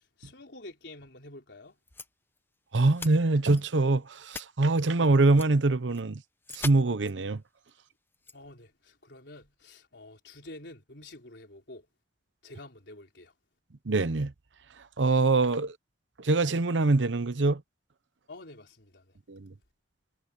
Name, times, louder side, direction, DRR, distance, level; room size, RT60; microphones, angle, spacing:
voice 1, 0.2-1.7 8.3-11.9 12.4-13.3 18.3-19.2, left 2 dB, 70° left, 4.8 m, -48 dB
sound 1, 1.9-2.1 2.4-2.5 2.9-3.1 3.5-3.8 4.1-4.4 5.3-5.5 5.9-6.0 6.4-6.7 7.0-7.1 7.7-7.8 8.1-8.4, left 3 dB, 10° left, 0.9 m, -39 dB
voice 2, 2.7-6.2 6.5-7.4 13.9-14.3 15.0-15.7 16.2-17.6 19.3-19.5, right 3 dB, 90° right, 0.8 m, -24 dB
head